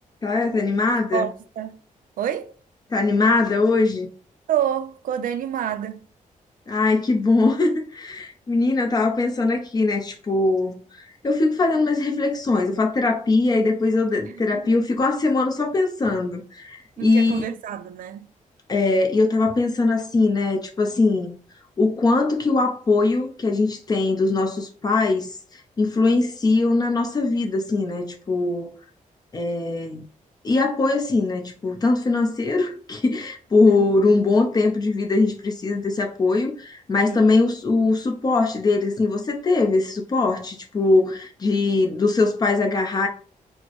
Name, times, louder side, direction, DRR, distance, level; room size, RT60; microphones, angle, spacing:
voice 1, 0.2-1.3 2.9-4.1 6.7-10.8 11.2-17.4 18.7-21.4 21.8-25.4 25.8-28.7 29.3-30.1 30.4-43.1, left 3 dB, 30° left, 0.6 m, -21 dB
voice 2, 1.1-1.8 2.2-2.5 4.5-6.0 14.2-14.6 17.0-18.3 28.6-28.7 33.7-33.9 37.1-37.4, right 9 dB, 80° right, 0.4 m, -28 dB
4.3 x 2.0 x 2.9 m
wide cardioid pair, 160°, 14 cm